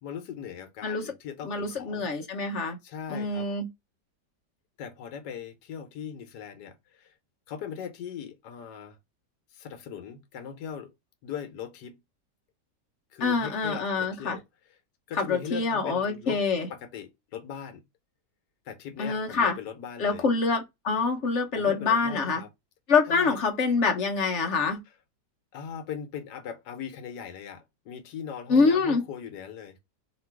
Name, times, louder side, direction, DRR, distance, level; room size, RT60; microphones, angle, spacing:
voice 1, 0.0-2.1 2.8-3.5 4.8-7.1 7.5-9.0 9.5-10.9 11.2-12.0 13.1-14.4 15.1-16.4 16.7-17.8 18.7-20.2 21.5-22.5 23.1-23.4 25.5-29.8, left 8 dB, 70° left, 1.4 m, -39 dB
voice 2, 0.8-1.1 1.4-2.8 3.1-3.7 13.2-14.4 15.1-16.7 19.0-19.6 20.0-22.4 22.9-24.8 28.5-29.0, left 4 dB, 55° left, 0.9 m, -25 dB
3.0 x 2.9 x 4.5 m
omnidirectional pair, 1.9 m